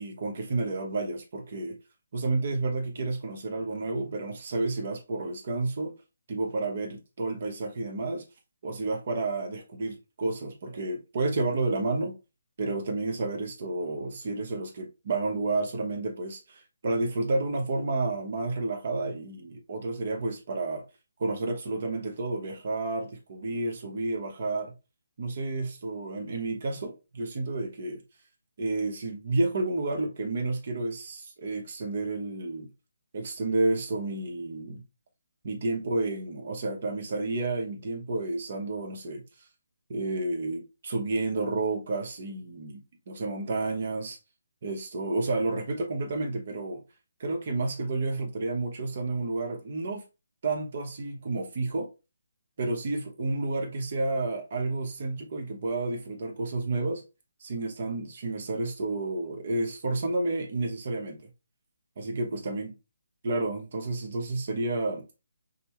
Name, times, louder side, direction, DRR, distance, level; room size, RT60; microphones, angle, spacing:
voice 1, 0.0-1.8 2.1-5.9 6.3-8.2 8.6-12.2 12.6-20.8 21.2-24.7 25.2-28.0 28.6-32.7 33.1-34.8 35.4-39.2 39.9-44.2 44.6-46.8 47.2-50.0 50.4-51.9 52.6-57.0 57.4-61.2 62.0-62.7 63.2-65.1, right 2 dB, 45° right, 0.9 m, -30 dB
5.2 x 2.1 x 3.0 m
hypercardioid pair, 165°, 0 cm